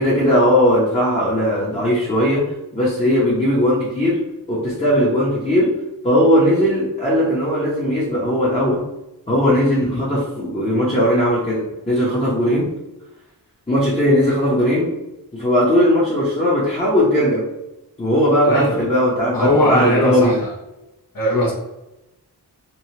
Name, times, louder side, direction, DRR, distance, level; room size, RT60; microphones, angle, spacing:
voice 1, 0.0-4.2 4.5-5.7 6.0-8.8 9.3-12.7 13.7-14.9 15.3-17.4 18.0-20.4, equal, 15° left, -7 dB, 0.9 m, -18 dB
voice 2, 18.5-18.8 19.3-20.5 21.1-21.5, left 1 dB, 55° left, -6 dB, 0.9 m, -18 dB
3.1 x 2.3 x 2.9 m, 0.95 s
wide cardioid pair, 55°, 41 cm